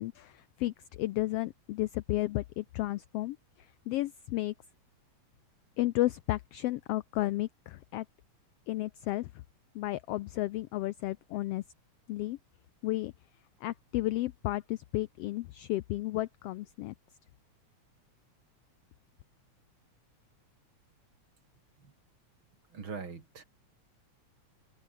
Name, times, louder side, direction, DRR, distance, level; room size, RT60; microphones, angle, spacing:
voice 1, 0.0-3.4 3.9-4.5 5.8-8.0 8.7-9.3 9.7-11.6 12.1-12.4 12.8-13.1 13.6-16.9, left 17 dB, 85° left, 1.3 m, -33 dB
voice 2, 22.7-23.4, right 5 dB, 45° right, 3.4 m, -42 dB
omnidirectional pair, 3.4 m